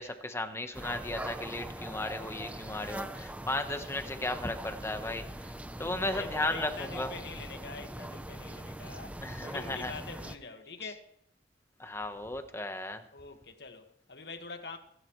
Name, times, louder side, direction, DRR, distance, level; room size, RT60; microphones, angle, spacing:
voice 1, 0.0-5.5 5.8-7.1 9.2-9.9 11.8-13.0, left 2 dB, 15° left, 1.2 m, -35 dB
sound 1, 0.7-10.4, right 1 dB, 10° right, 0.7 m, -42 dB
voice 2, 6.0-11.1 13.1-14.8, left 4 dB, 65° left, 1.8 m, -44 dB
26.0 x 11.5 x 3.2 m
head